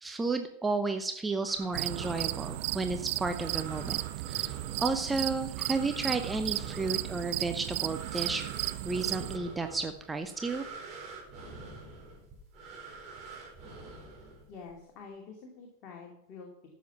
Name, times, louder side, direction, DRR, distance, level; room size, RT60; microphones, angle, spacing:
voice 1, 0.0-4.0 4.3-8.4 8.8-10.6, right 3 dB, 10° right, 7 dB, 0.8 m, -32 dB
sound 1, 1.5-14.8, right 3 dB, 35° right, 4.6 m, -47 dB
sound 2, 1.7-9.4, right 19 dB, 50° right, 0.4 m, -35 dB
voice 2, 14.5-16.7, left 5 dB, 35° left, 0 dB, 2.5 m, -47 dB
13.5 x 7.3 x 6.0 m, 0.77 s
figure-of-eight pair, 90°, 0 cm